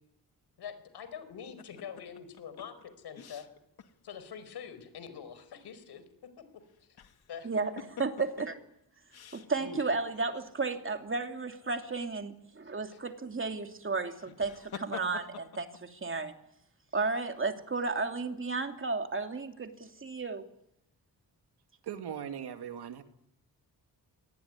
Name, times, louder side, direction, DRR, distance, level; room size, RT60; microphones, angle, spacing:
voice 1, 0.6-3.4 4.0-6.0 7.3-7.5 12.9-13.0, left 7 dB, 90° left, 11 dB, 4.8 m, -44 dB
sound 1, 1.6-3.9 4.2-4.3 6.7-7.3 7.8-8.5 9.1-9.9 14.1-15.8, left 7 dB, 70° left, 2.3 m, -46 dB
voice 2, 7.4-8.5 9.3-16.3 16.9-20.5, right 4 dB, 30° right, 5 dB, 2.8 m, -33 dB
voice 3, 21.8-23.0, right 8 dB, 90° right, 7 dB, 2.3 m, -39 dB
25.0 x 19.5 x 9.8 m, 0.80 s
cardioid pair, 100°, 38 cm